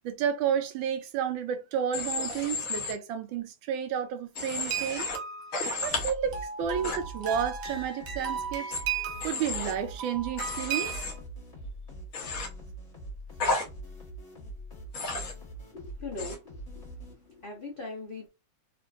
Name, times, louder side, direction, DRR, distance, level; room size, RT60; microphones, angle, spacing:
voice 1, 0.0-5.1 5.8-8.8 9.2-11.1, right 8 dB, 80° right, 1.3 m, -31 dB
Human voice / Train, 1.9-2.9 4.3-5.2 5.5-6.1 6.8-7.0 8.7-8.8 9.2-9.7 10.4-11.1 12.1-12.5 13.4-13.6 14.9-15.3 16.2-16.4, left 3 dB, 55° left, 1.0 m, -32 dB
sound 1, 4.7-11.2, right 7 dB, 60° right, 1.2 m, -36 dB
sound 2, 5.9-17.5, right 1 dB, 25° left, 1.0 m, -44 dB
voice 2, 15.7-16.8 17.3-18.3, left 3 dB, 75° left, 0.5 m, -40 dB
3.6 x 2.4 x 2.4 m
omnidirectional pair, 2.1 m